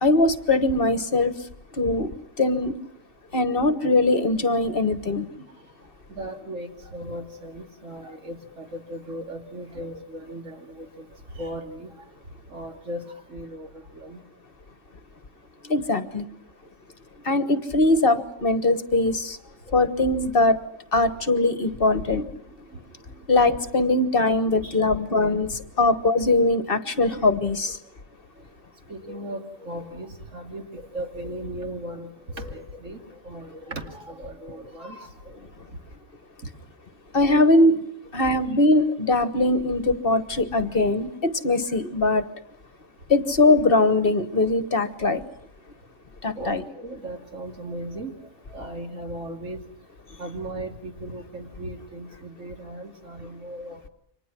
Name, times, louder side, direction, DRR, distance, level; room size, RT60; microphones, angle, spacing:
voice 1, 0.0-2.8 3.3-5.3 15.6-16.3 17.2-19.4 19.7-20.6 20.9-22.2 23.3-27.8 37.1-37.9 38.1-42.2 43.1-45.2 46.2-46.6, left 2 dB, 50° left, 11 dB, 1.4 m, -21 dB
voice 2, 6.1-11.1 11.3-11.9 12.5-14.2 19.7-19.8 24.4-25.0 28.9-35.1 46.4-48.1 48.5-49.6 50.2-53.9, right 1 dB, 80° right, 4 dB, 3.0 m, -37 dB
29.5 x 25.0 x 6.1 m, 0.67 s
omnidirectional pair, 1.3 m